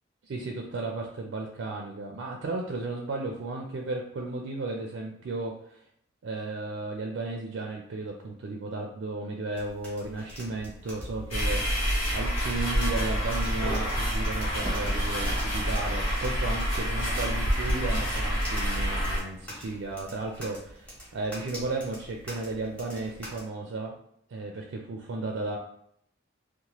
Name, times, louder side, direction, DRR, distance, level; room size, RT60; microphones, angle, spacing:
voice 1, 0.2-5.8 6.2-24.0 24.3-25.6, right 3 dB, 65° right, 1 dB, 0.4 m, -34 dB
sound 1, 9.5-23.4, equal, 5° left, 0.9 m, -45 dB
sound 2, 11.3-19.2, equal, 85° left, 1.1 m, -28 dB
sound 3, 14.4-19.2, right 1 dB, 20° right, 0.6 m, -44 dB
2.9 x 2.1 x 2.9 m, 0.68 s
head